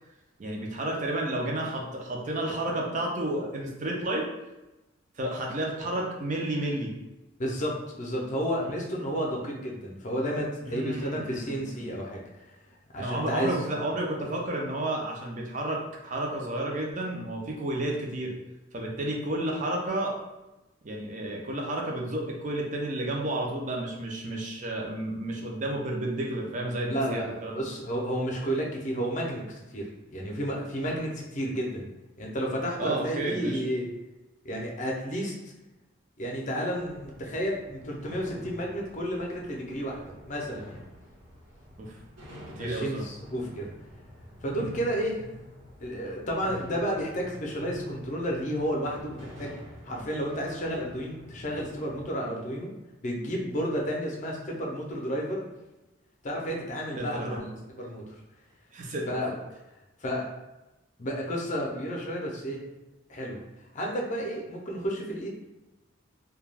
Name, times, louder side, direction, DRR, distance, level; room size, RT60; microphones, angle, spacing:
voice 1, 0.4-4.3 5.2-6.9 10.6-11.9 13.0-18.3 18.7-20.1 20.8-27.6 32.8-33.6 41.8-42.0 42.6-43.1 57.0-57.4 58.7-59.3, right 1 dB, 40° right, 0 dB, 0.5 m, -31 dB
voice 2, 7.4-12.2 12.9-13.6 26.9-29.4 29.7-31.9 32.2-33.9 34.4-35.5 36.2-40.0 40.3-40.8 42.5-43.7 44.4-45.2 45.8-49.5 49.8-52.7 53.0-55.4 56.2-58.0 59.1-59.3 60.0-60.3 61.0-62.6 63.1-63.4 63.7-65.3, equal, 40° left, -1 dB, 0.5 m, -31 dB
sound 1, 36.7-52.1, left 1 dB, 85° right, 1.0 m, -47 dB
2.3 x 2.2 x 3.2 m, 1.0 s
head